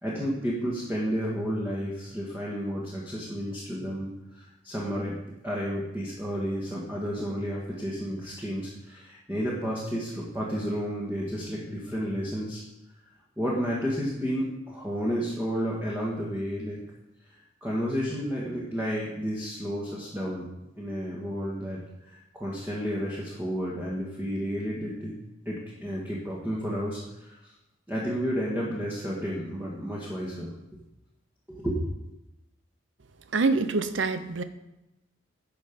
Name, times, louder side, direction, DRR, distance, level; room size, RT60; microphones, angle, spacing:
voice 1, 0.0-5.2 5.4-12.6 13.4-16.8 17.3-25.1 25.4-27.5 27.9-30.8 31.5-31.9, equal, 10° right, -5 dB, 1.6 m, -31 dB
voice 2, 33.3-34.4, right 3 dB, 70° right, 11 dB, 0.7 m, -25 dB
10.5 x 5.6 x 5.2 m, 0.92 s
head